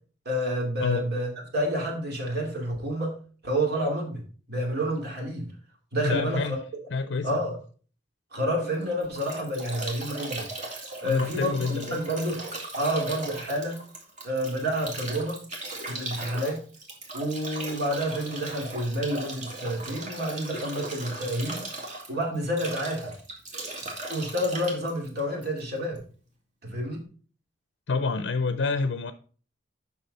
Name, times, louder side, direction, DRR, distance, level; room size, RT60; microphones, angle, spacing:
voice 1, 0.2-4.2 4.5-5.5 5.9-6.6 7.2-7.6 8.3-10.5 11.0-12.5 12.8-13.8 14.2-15.4 15.8-16.6 17.1-21.6 22.1-23.1 24.1-26.0 26.6-27.1, equal, 60° right, 1 dB, 2.6 m, -29 dB
voice 2, 6.0-6.6 6.9-7.3 11.0-12.0 27.9-29.1, left 4 dB, 75° left, 10 dB, 0.6 m, -27 dB
Bathtub (filling or washing) / Drip / Trickle dribble, 8.7-26.0, right 2 dB, 40° right, 2.1 m, -38 dB
7.8 x 5.9 x 4.1 m, 0.40 s
head